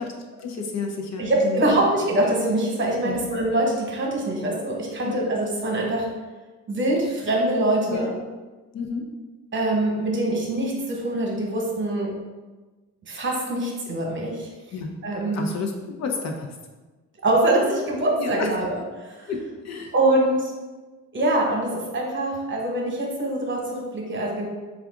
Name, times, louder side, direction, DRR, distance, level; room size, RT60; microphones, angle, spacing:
voice 1, 0.0-1.8 3.0-3.2 5.0-5.1 7.9-8.1 8.7-9.1 14.7-14.9 15.3-16.5 18.2-18.5 19.3-19.4 19.6-19.9, left 4 dB, 60° left, 2 dB, 0.6 m, -30 dB
voice 2, 1.2-6.0 6.7-8.1 9.5-12.1 13.1-14.5 15.0-15.4 17.2-18.7 19.0-19.3 19.9-20.5 21.1-24.5, right 1 dB, 40° right, -1 dB, 1.0 m, -24 dB
3.6 x 2.4 x 3.6 m, 1.2 s
cardioid pair, 90°, 30 cm